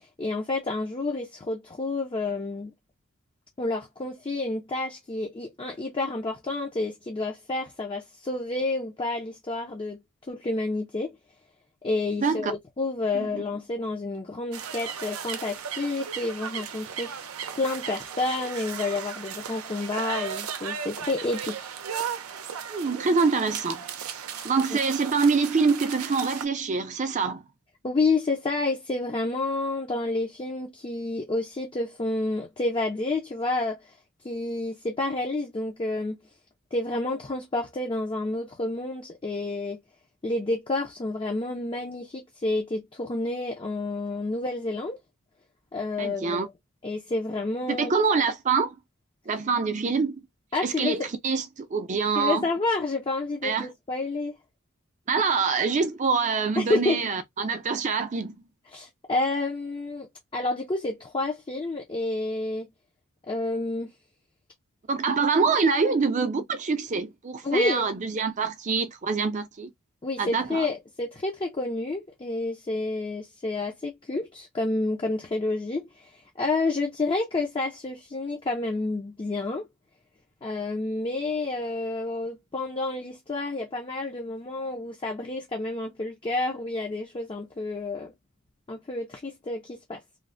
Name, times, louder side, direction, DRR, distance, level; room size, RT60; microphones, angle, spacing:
voice 1, 0.0-2.7 3.6-10.0 10.3-11.2 11.8-21.7 24.7-24.8 27.8-34.0 34.2-36.2 36.7-39.8 40.2-45.0 45.7-46.5 46.8-47.9 50.5-51.1 52.2-54.3 56.6-57.0 58.7-60.1 60.3-62.7 63.3-63.9 67.4-67.9 70.0-79.7 80.4-88.1 88.7-90.0, left 2 dB, 25° left, 0.4 m, -29 dB
voice 2, 12.2-12.5 13.1-13.4 22.7-23.8 24.4-27.4 46.0-46.5 47.7-48.7 49.3-50.2 50.6-52.5 53.4-53.7 55.1-58.4 64.9-69.7 70.2-70.7, right 4 dB, 35° right, 0.4 m, -25 dB
sound 1, 14.5-26.4, right 7 dB, 90° right, 0.5 m, -36 dB
3.1 x 2.0 x 2.4 m
head